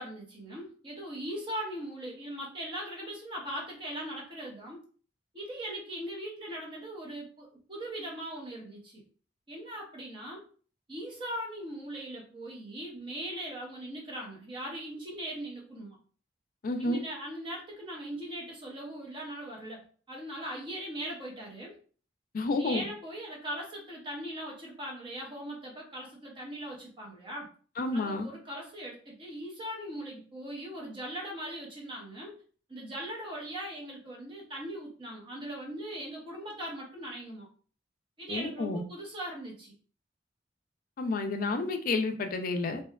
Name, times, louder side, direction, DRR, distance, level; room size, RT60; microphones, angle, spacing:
voice 1, 0.0-4.8 5.3-9.0 9.5-10.4 10.9-16.0 16.8-21.8 22.6-27.5 27.9-32.4 32.7-37.5 38.2-39.7, right 1 dB, 30° right, -2 dB, 0.7 m, -40 dB
voice 2, 16.6-17.0 22.3-22.9 27.8-28.3 38.3-38.8 41.0-42.8, left 2 dB, 50° left, 6 dB, 0.4 m, -30 dB
2.7 x 2.2 x 2.2 m, 0.41 s
head